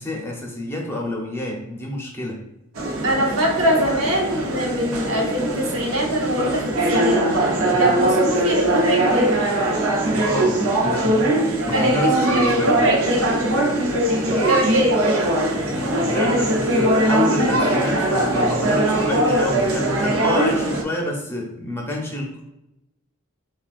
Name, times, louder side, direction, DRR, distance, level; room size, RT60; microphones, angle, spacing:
voice 1, 0.0-2.4 7.7-8.0 10.1-12.9 14.2-14.6 15.6-22.4, left 1 dB, 10° left, -1 dB, 0.7 m, -28 dB
sound 1, 2.8-20.8, right 1 dB, 90° right, 0.7 m, -21 dB
voice 2, 3.0-7.3 7.8-9.3 11.7-13.4 14.3-14.9, right 1 dB, 75° right, -1 dB, 1.0 m, -23 dB
6.0 x 2.3 x 2.4 m, 0.89 s
head